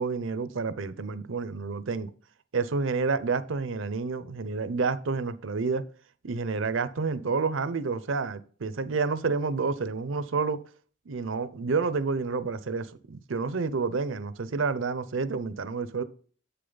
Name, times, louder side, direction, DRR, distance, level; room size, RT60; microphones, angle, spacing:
voice 1, 0.0-2.1 2.5-5.8 6.2-10.6 11.1-16.0, right 4 dB, 65° right, 0.6 m, -29 dB
7.4 x 6.8 x 3.9 m
head